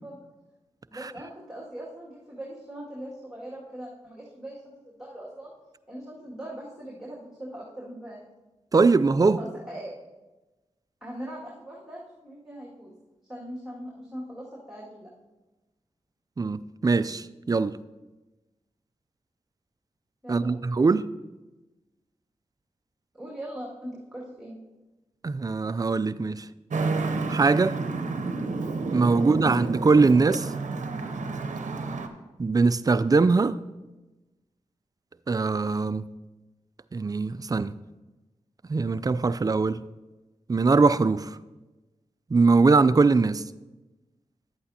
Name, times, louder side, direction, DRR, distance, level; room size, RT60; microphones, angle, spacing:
voice 1, 0.9-5.5 5.9-8.2 9.4-9.9 11.0-12.9 13.2-15.1 20.2-20.7 23.1-24.5, right 1 dB, 5° right, 2.1 m, -40 dB
voice 2, 8.7-9.4 16.4-17.8 20.3-21.1 25.2-26.4 27.3-27.8 28.9-30.5 32.4-33.6 35.3-36.1 36.9-37.7 38.7-39.8 40.5-41.3 42.3-43.4, right 4 dB, 30° right, 0.3 m, -21 dB
Traffic noise roadway noise, 26.7-32.1, right 3 dB, 75° right, 0.7 m, -30 dB
11.0 x 8.4 x 2.8 m
cardioid pair, 40°, 13 cm